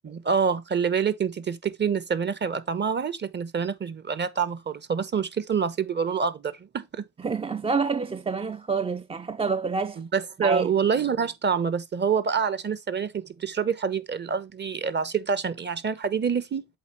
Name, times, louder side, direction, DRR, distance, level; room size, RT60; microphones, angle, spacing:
voice 1, 0.0-7.0 10.0-16.7, right 6 dB, 35° right, 1.0 m, -27 dB
voice 2, 7.2-10.0 10.4-10.7, right 4 dB, 20° right, 0.4 m, -27 dB
8.0 x 3.9 x 4.4 m
cardioid pair, 90°, 30 cm